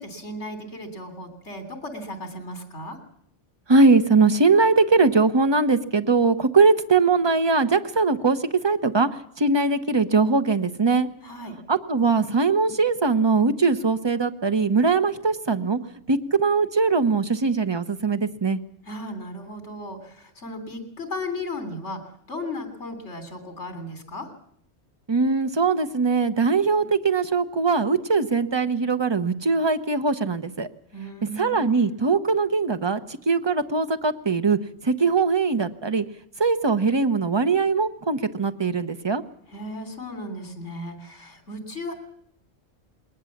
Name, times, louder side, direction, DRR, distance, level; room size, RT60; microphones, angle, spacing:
voice 1, 0.0-3.0 11.2-11.5 18.9-22.0 22.3-24.3 30.9-32.0 39.5-41.9, left 1 dB, 80° left, 6 dB, 3.6 m, -35 dB
voice 2, 3.7-9.1 9.4-11.1 11.7-15.8 16.1-18.6 25.1-30.7 31.2-33.0 33.3-36.0 36.4-39.2, right 4 dB, 25° right, 9 dB, 0.9 m, -21 dB
21.0 x 19.0 x 7.3 m, 0.67 s
omnidirectional pair, 1.2 m